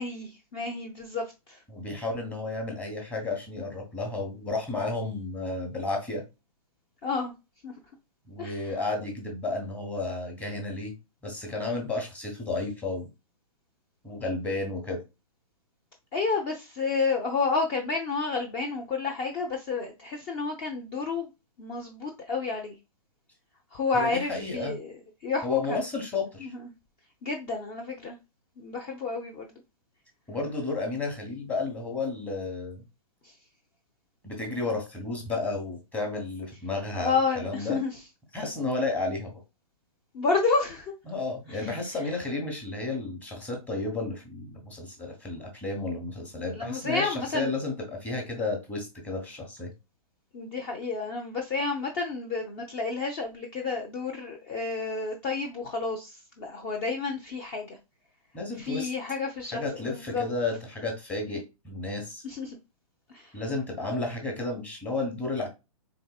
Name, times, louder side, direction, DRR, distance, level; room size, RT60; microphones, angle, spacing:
voice 1, 0.0-1.6 7.0-7.3 7.6-7.7 8.4-8.7 16.1-21.3 21.6-22.8 23.7-24.9 25.2-25.8 26.4-26.7 27.2-28.2 28.6-29.5 33.2-33.3 36.9-37.9 40.1-40.9 41.5-41.7 46.5-47.5 50.3-57.8 58.6-60.2 62.2-62.6 63.1-63.4 63.8-64.0, left 4 dB, 30° left, 0.6 m, -30 dB
voice 2, 1.7-6.2 8.3-10.9 11.2-13.1 14.0-15.0 23.9-24.7 25.4-26.5 30.3-32.8 34.2-37.8 38.3-39.4 41.1-49.7 58.3-58.9 59.5-62.2 63.3-65.5, left 3 dB, 10° left, 1.2 m, -32 dB
3.9 x 3.6 x 2.3 m
hypercardioid pair, 145°, 19 cm